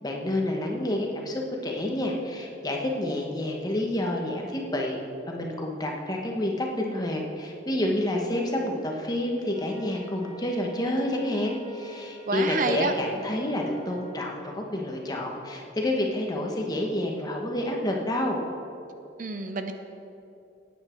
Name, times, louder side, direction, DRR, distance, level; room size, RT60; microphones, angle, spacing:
voice 1, 0.0-5.0 5.3-18.4, left 1 dB, 20° left, 0 dB, 1.3 m, -29 dB
Wind instrument woodwind instrument, 9.5-14.4, right 3 dB, 25° right, 2.3 m, -48 dB
voice 2, 12.3-12.9 19.2-19.7, right 3 dB, 45° right, 7 dB, 0.6 m, -28 dB
14.0 x 9.4 x 4.5 m, 2.7 s
head